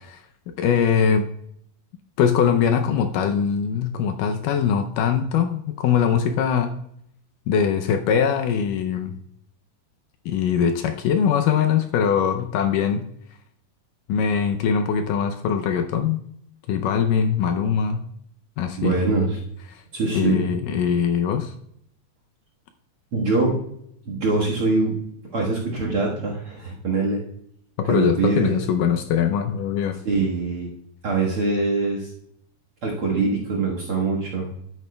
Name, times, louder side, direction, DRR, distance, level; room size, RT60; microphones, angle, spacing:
voice 1, 0.6-1.3 2.2-6.8 7.5-9.2 10.3-13.1 14.1-16.2 16.7-18.1 18.6-19.0 19.7-19.8 20.1-21.5 27.8-30.0, left 7 dB, 80° left, 6 dB, 2.1 m, -22 dB
voice 2, 18.8-19.4 19.9-20.4 23.1-23.6 24.1-25.0 25.3-27.2 27.9-28.6 30.1-30.7 31.0-32.1 32.8-34.5, right 3 dB, 50° right, -2 dB, 1.8 m, -23 dB
11.0 x 9.0 x 2.2 m, 0.71 s
omnidirectional pair, 4.1 m